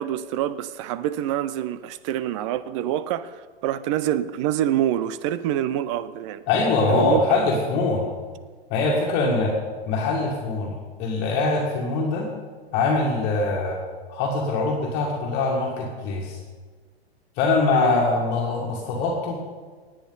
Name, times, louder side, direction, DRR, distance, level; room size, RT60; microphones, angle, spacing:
voice 1, 0.0-6.5 6.9-7.4 17.7-18.0, right 11 dB, 30° right, 0.5 m, -26 dB
voice 2, 6.5-8.1 8.7-9.5 9.9-12.3 12.7-13.8 14.1-16.4 17.4-19.4, left 3 dB, 35° left, 1.9 m, -23 dB
18.0 x 8.7 x 3.9 m
hypercardioid pair, 115°, 32 cm